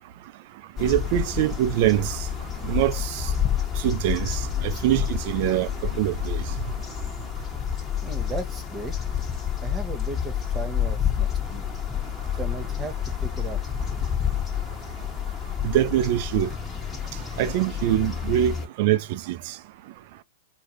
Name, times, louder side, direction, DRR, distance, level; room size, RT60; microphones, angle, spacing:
sound 1, 0.8-18.7, left 9 dB, 20° left, 1.4 m, -29 dB
voice 1, 0.8-2.2 2.6-3.2 3.8-5.7 6.0-6.4 15.6-16.5 17.4-19.4, right 12 dB, 55° right, 0.6 m, -24 dB
voice 2, 8.0-8.9 9.6-11.6 12.3-13.6, right 3 dB, 20° right, 1.4 m, -36 dB
4.8 x 2.5 x 3.0 m
hypercardioid pair, 105°, 0 cm